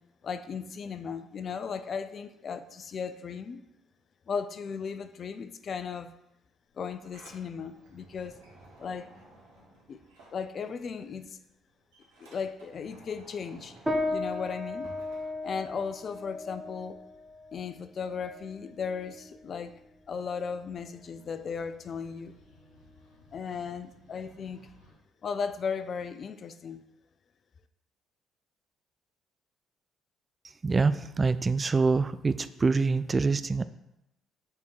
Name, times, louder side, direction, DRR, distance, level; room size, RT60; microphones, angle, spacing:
voice 1, 0.2-3.6 4.3-6.1 6.8-8.4 8.8-9.1 9.9-10.0 10.3-11.4 12.2-13.8 14.1-14.9 15.4-17.0 17.5-19.7 20.1-22.3 23.3-24.7 25.2-26.8, left 6 dB, 50° left, 11 dB, 0.4 m, -36 dB
Sliding door, 6.7-11.0 11.3-16.0, right 2 dB, 75° right, 1.3 m, -55 dB
sound 1, 13.9-23.5, left 2 dB, 10° right, 1.3 m, -37 dB
sound 2, 20.0-24.9, left 2 dB, 90° left, 2.4 m, -61 dB
voice 2, 30.6-33.6, right 4 dB, 30° right, 13 dB, 0.3 m, -25 dB
6.3 x 3.6 x 4.6 m, 0.89 s
hypercardioid pair, 50°, 0 cm